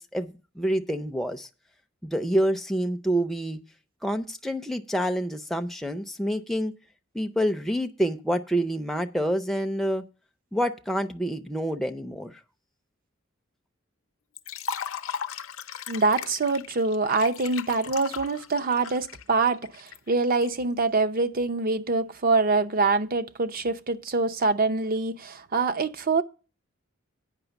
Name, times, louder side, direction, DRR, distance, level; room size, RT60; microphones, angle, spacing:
voice 1, 0.0-1.5 2.0-3.6 4.0-6.7 7.1-10.0 10.5-12.4, equal, ahead, 0.5 m, -27 dB
Liquid, 14.4-20.5, left 7 dB, 80° left, 0.7 m, -37 dB
voice 2, 15.9-26.2, right 3 dB, 45° right, 0.6 m, -25 dB
9.1 x 5.8 x 6.9 m
head